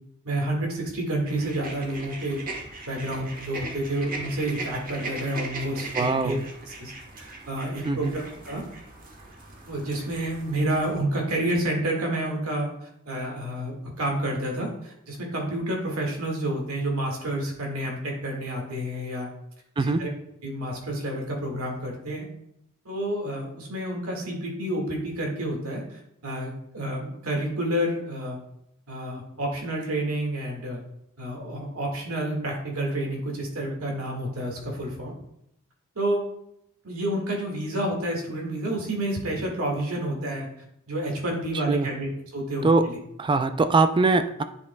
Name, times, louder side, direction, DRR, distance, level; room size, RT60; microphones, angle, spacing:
voice 1, 0.2-2.4 2.9-6.4 6.7-8.6 9.6-19.3 19.8-20.1 20.4-22.2 22.9-28.4 28.9-30.8 31.2-35.1 36.0-36.2 36.8-40.5 40.9-43.0, right 1 dB, 85° right, 0 dB, 1.9 m, -29 dB
sound 1, 1.3-11.0, right 3 dB, 40° right, 1.2 m, -39 dB
voice 2, 5.9-6.4 7.9-8.1 19.8-20.0 41.7-41.9 42.6-42.9 43.2-44.4, right 3 dB, 20° right, 10 dB, 0.3 m, -22 dB
9.8 x 5.2 x 2.3 m, 0.77 s
head